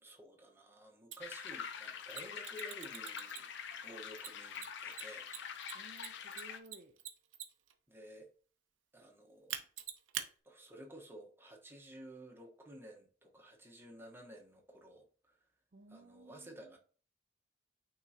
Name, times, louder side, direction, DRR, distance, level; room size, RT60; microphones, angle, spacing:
voice 1, 0.0-3.5 3.8-5.3 7.9-8.3 8.9-9.6 10.4-15.4 15.9-16.8, right 1 dB, 10° right, 1.1 m, -53 dB
Mechanisms, 1.1-1.2 2.1-3.7 4.2-7.7 9.5-10.3, right 10 dB, 75° right, 0.8 m, -43 dB
sound 1, 1.2-6.6, left 7 dB, 65° left, 0.6 m, -45 dB
voice 2, 5.7-7.0 15.7-16.8, right 2 dB, 45° right, 0.6 m, -57 dB
9.0 x 3.8 x 2.8 m
head